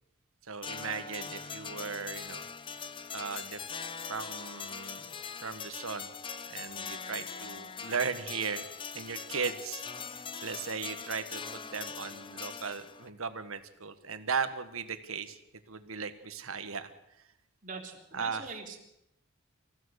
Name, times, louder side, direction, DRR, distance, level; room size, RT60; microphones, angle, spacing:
voice 1, 0.5-2.4 3.1-3.6 4.1-5.1 5.4-6.1 6.5-8.7 8.9-9.8 10.1-15.4 15.7-16.9 18.1-18.5, right 5 dB, 75° right, 10 dB, 1.5 m, -37 dB
sound 1, 0.6-13.1, left 6 dB, 25° left, 0.6 m, -41 dB
voice 2, 17.6-18.8, right 4 dB, 40° right, 1 dB, 3.6 m, -42 dB
26.5 x 15.5 x 6.6 m, 0.82 s
head